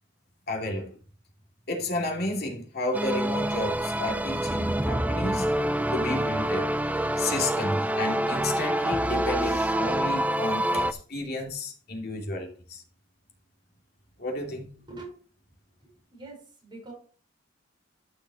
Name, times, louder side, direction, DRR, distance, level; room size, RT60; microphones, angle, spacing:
voice 1, 0.5-0.9 1.7-6.8 7.1-12.8 14.2-14.7, left 2 dB, 55° left, 2.6 m, -32 dB
sound 1, 2.9-10.9, right 1 dB, 10° right, 0.4 m, -26 dB
voice 2, 15.8-16.9, right 2 dB, 25° right, 5.1 m, -44 dB
14.0 x 5.9 x 3.0 m
head